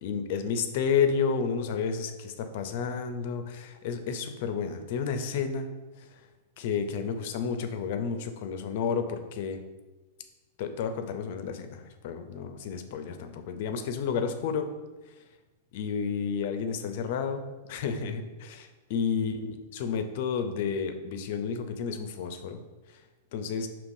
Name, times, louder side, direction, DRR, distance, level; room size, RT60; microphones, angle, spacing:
voice 1, 0.0-5.7 6.6-9.6 10.6-14.7 15.7-17.4 17.7-22.6 23.3-23.7, left 6 dB, 60° left, 8 dB, 0.5 m, -31 dB
5.2 x 2.8 x 2.6 m, 1.2 s
hypercardioid pair, 110°, 0 cm